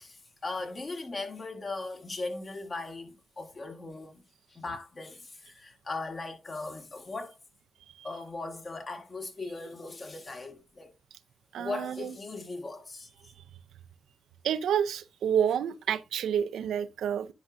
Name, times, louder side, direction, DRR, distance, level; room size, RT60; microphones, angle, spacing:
voice 1, 0.0-4.2 4.5-7.4 8.0-10.9 11.6-13.1, left 3 dB, 50° left, 1.8 m, -38 dB
voice 2, 11.5-12.1 14.4-17.3, right 8 dB, 80° right, 0.5 m, -29 dB
10.5 x 4.9 x 2.6 m
supercardioid pair, 50°, 0 cm